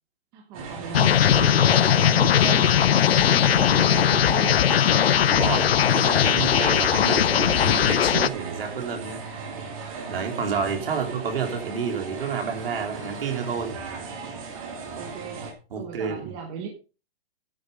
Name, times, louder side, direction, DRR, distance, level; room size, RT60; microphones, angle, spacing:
voice 1, 0.3-5.2 15.0-16.7, right 6 dB, 15° right, 1.2 m, -36 dB
sound 1, 0.5-15.5, right 4 dB, 35° right, 2.7 m, -37 dB
sound 2, 0.9-8.3, left 9 dB, 70° left, 0.7 m, -19 dB
voice 2, 5.2-9.2 10.1-13.8 15.7-16.3, right 6 dB, 65° right, 3.4 m, -29 dB
10.5 x 6.9 x 5.5 m
hypercardioid pair, 175°, 31 cm